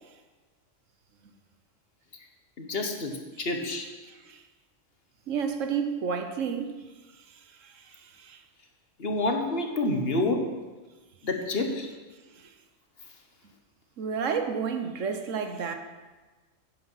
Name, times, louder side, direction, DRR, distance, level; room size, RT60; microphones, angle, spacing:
voice 1, 2.6-3.9 9.0-10.5 11.2-11.9, left 2 dB, 55° left, 1.4 m, -28 dB
voice 2, 5.3-6.8 7.6-8.4 14.0-15.7, right 6 dB, 85° right, 1.4 m, -31 dB
10.0 x 9.5 x 5.6 m
omnidirectional pair, 1.3 m